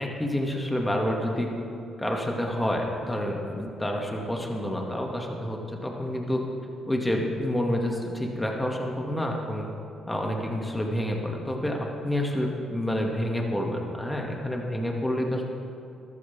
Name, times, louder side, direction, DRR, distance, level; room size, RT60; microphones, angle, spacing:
voice 1, 0.0-1.5 2.0-6.4 6.9-9.7 10.1-15.4, left 1 dB, 10° left, 0 dB, 2.2 m, -28 dB
14.0 x 13.0 x 3.6 m, 2.7 s
hypercardioid pair, 45°, 0 cm